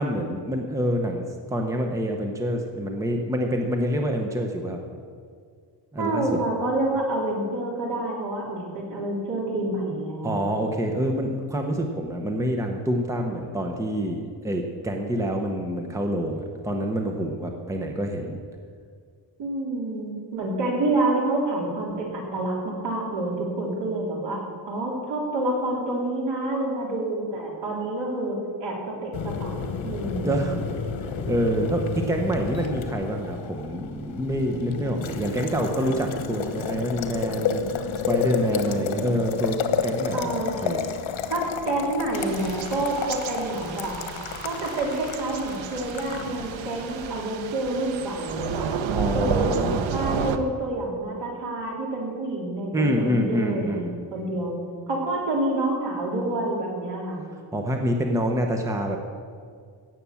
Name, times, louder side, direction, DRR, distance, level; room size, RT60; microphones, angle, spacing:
voice 1, 0.0-4.8 5.9-6.2 10.2-18.4 30.2-30.6 31.0-40.4 40.6-40.9 48.9-49.8 52.7-54.0 57.5-59.0, equal, 5° right, 3 dB, 0.9 m, -27 dB
voice 2, 6.0-10.5 19.4-24.4 24.7-28.8 29.0-29.5 29.8-30.3 38.6-39.1 40.1-40.5 41.3-43.9 44.4-48.7 49.1-53.8 54.1-54.6 54.9-57.2, right 2 dB, 65° right, -2 dB, 3.7 m, -28 dB
Boiling, 29.1-47.1, left 6 dB, 85° left, 1.3 m, -31 dB
Thunder / Rain, 42.1-50.4, right 6 dB, 85° right, 1.0 m, -31 dB
17.0 x 7.7 x 7.1 m, 2.1 s
wide cardioid pair, 170°, 45 cm